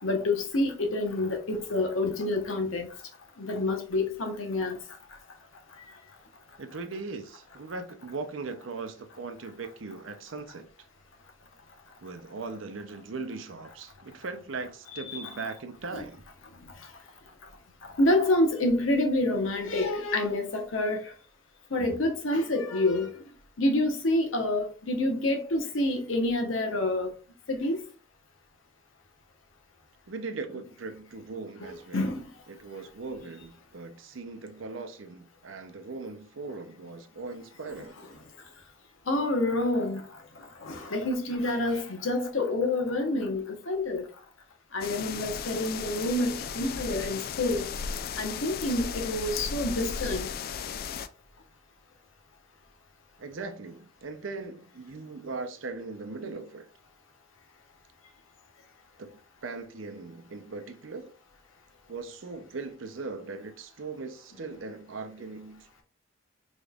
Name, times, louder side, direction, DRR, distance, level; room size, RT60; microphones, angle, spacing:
voice 1, 0.0-2.9 3.4-4.8 15.1-15.3 18.0-21.0 21.7-23.1 23.6-27.1 27.5-27.8 31.6-32.2 39.1-40.1 40.6-44.0 44.7-47.7 48.2-50.3, left 2 dB, 90° left, 0.9 m, -27 dB
voice 2, 6.6-10.9 12.0-16.2 30.1-32.1 32.5-38.0 53.2-56.7 59.0-61.1 61.9-65.8, right 3 dB, 75° right, 0.6 m, -39 dB
sound 1, 44.8-51.1, left 6 dB, 50° left, 0.3 m, -35 dB
5.0 x 3.1 x 2.3 m
head